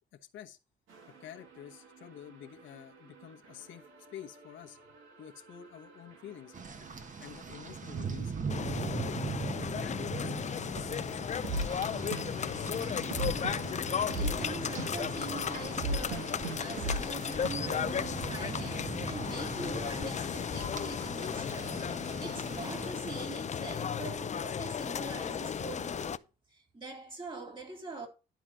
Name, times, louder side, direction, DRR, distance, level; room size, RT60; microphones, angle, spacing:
sound 1, 0.9-17.5, right 2 dB, 85° right, 2.2 m, -42 dB
voice 1, 1.2-4.8 5.2-6.5 7.2-8.3 8.7-11.0, left 10 dB, 75° left, 1.1 m, -49 dB
Rain, 6.5-22.9, right 5 dB, 40° right, 1.6 m, -41 dB
Horse Buggy Tour Guide New Orleans, 8.5-26.2, left 7 dB, 35° left, 0.6 m, -35 dB
voice 2, 14.1-26.2 26.5-28.1, right 3 dB, 25° right, 3.3 m, -43 dB
11.5 x 4.1 x 6.2 m
cardioid pair, 90°, 20 cm